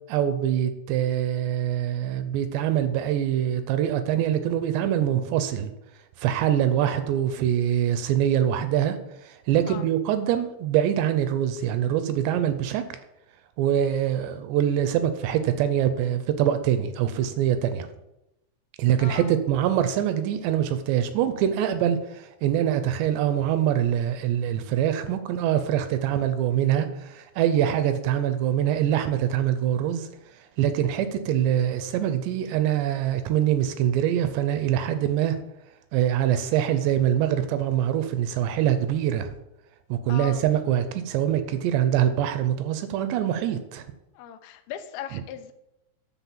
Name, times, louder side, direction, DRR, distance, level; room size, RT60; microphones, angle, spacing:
voice 1, 0.1-5.7 6.2-9.0 9.2-12.8 13.6-17.9 18.8-30.1 30.6-35.4 35.9-39.3 39.9-43.8, right 10 dB, 80° right, 10 dB, 2.7 m, -24 dB
voice 2, 19.0-19.4 40.1-40.4 44.1-45.5, left 10 dB, 85° left, 6 dB, 2.2 m, -38 dB
10.0 x 4.2 x 7.2 m, 0.89 s
omnidirectional pair, 5.2 m